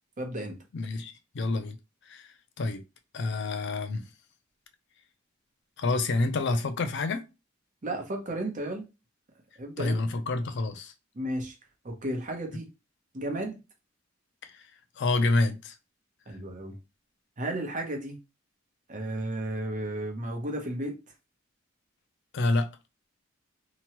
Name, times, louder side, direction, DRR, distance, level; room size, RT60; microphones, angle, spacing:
voice 1, 0.2-0.6 7.8-8.9 9.6-10.0 11.1-11.6 11.8-12.7 13.1-13.6 16.3-16.8 17.4-18.2 18.9-21.0, right 1 dB, 40° right, 0.8 m, -33 dB
voice 2, 0.7-1.8 2.0-2.8 3.1-4.1 5.8-7.2 9.8-10.9 14.4-14.7 15.0-15.7 22.3-22.7, left 2 dB, 60° left, 0.5 m, -28 dB
2.9 x 2.2 x 2.9 m
head